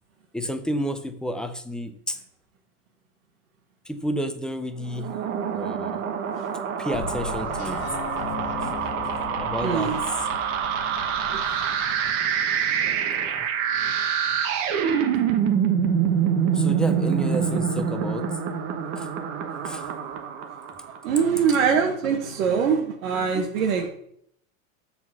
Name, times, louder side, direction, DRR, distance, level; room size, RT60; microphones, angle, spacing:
voice 1, 0.3-2.2 3.9-5.1 5.5-5.9 6.8-7.8 9.4-9.9 13.2-13.3 16.6-18.3 19.0-19.1 19.7-19.8, equal, ahead, 7 dB, 0.5 m, -30 dB
sound 1, 4.9-21.2, right 7 dB, 65° right, 1.3 m, -26 dB
sound 2, 6.9-12.1, left 5 dB, 35° left, 1.2 m, -37 dB
voice 2, 9.6-10.0 11.3-11.4 12.9-13.0 21.0-23.9, right 6 dB, 85° right, 1 dB, 1.3 m, -23 dB
6.9 x 4.2 x 6.1 m, 0.70 s
supercardioid pair, 125°, 40 cm